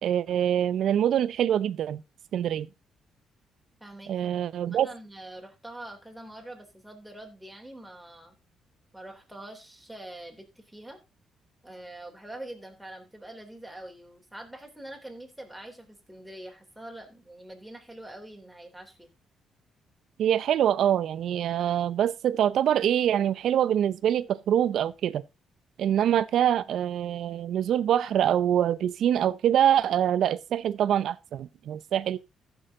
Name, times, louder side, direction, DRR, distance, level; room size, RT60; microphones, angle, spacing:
voice 1, 0.0-2.0 2.3-2.7 4.1-4.9 20.2-25.2 25.8-32.2, right 10 dB, 70° right, 0.6 m, -25 dB
voice 2, 3.8-4.3 4.6-8.4 8.9-11.0 11.6-19.1, right 1 dB, 5° right, 3.4 m, -44 dB
15.0 x 6.3 x 3.7 m
cardioid pair, 90°, 0 cm